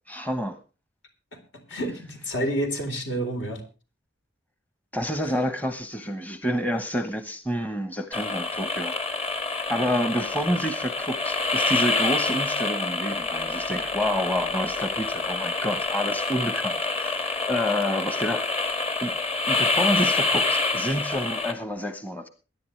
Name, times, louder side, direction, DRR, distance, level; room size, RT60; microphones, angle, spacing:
voice 1, 0.1-0.6 4.9-9.4 9.7-19.2 19.5-22.3, equal, 10° left, 10 dB, 1.0 m, -29 dB
voice 2, 1.7-3.6, right 1 dB, 70° left, 5 dB, 3.9 m, -29 dB
sound 1, 8.1-21.5, left 3 dB, 35° left, 1.9 m, -27 dB
22.5 x 10.5 x 3.2 m, 0.34 s
head